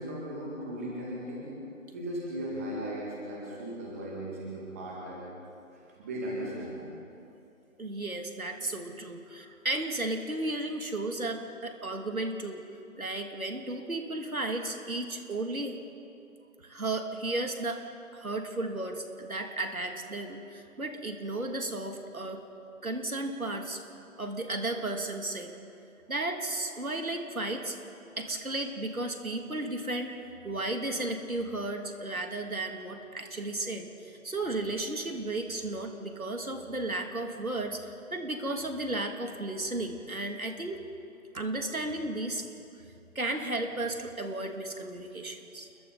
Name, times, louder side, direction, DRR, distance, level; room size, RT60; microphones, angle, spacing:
voice 1, 0.0-1.5 1.9-5.2 5.7-6.9 8.9-9.0 9.3-9.4, right 1 dB, 10° right, -5 dB, 2.0 m, -37 dB
voice 2, 7.8-12.6 13.0-15.8 16.6-17.8 18.1-22.4 22.8-23.8 24.2-25.5 26.1-27.8 28.2-30.1 30.4-40.8 41.3-42.5 43.1-45.7, right 2 dB, 75° right, 4 dB, 2.8 m, -34 dB
29.5 x 22.0 x 4.1 m, 2.7 s
figure-of-eight pair, 160°, 43 cm